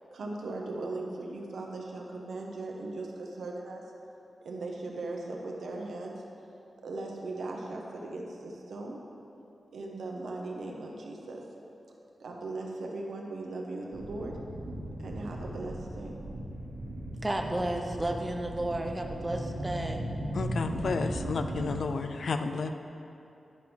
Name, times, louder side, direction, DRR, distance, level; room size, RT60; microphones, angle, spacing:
voice 1, 0.1-3.8 4.4-6.2 6.8-9.0 9.7-11.4 12.2-14.4 15.0-16.2, right 2 dB, 90° right, 1.0 m, -38 dB
sound 1, 13.9-21.8, right 1 dB, 60° right, 1.6 m, -37 dB
voice 2, 17.2-20.0, right 1 dB, 15° right, 0.5 m, -32 dB
voice 3, 20.3-22.7, left 4 dB, 60° left, 0.4 m, -31 dB
10.5 x 3.5 x 6.0 m
wide cardioid pair, 170°, 0 cm